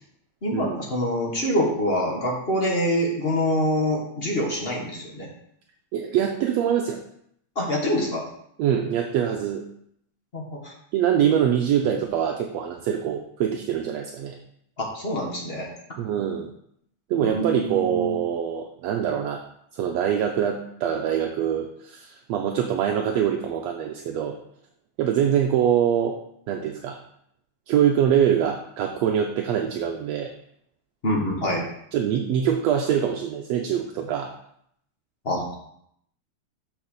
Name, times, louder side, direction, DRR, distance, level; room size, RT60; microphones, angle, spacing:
voice 1, 0.4-5.3 7.5-8.2 10.3-10.7 14.8-15.7 17.2-18.2 31.0-31.6 35.2-35.5, equal, 30° left, -2 dB, 1.2 m, -25 dB
voice 2, 5.9-7.0 8.6-9.6 10.9-14.4 16.0-16.5 17.1-19.4 19.7-24.4 25.0-26.2 26.5-27.0 27.7-30.3 31.9-34.3, right 9 dB, 75° right, 3 dB, 1.8 m, -24 dB
6.5 x 6.2 x 6.5 m, 0.72 s
omnidirectional pair, 3.3 m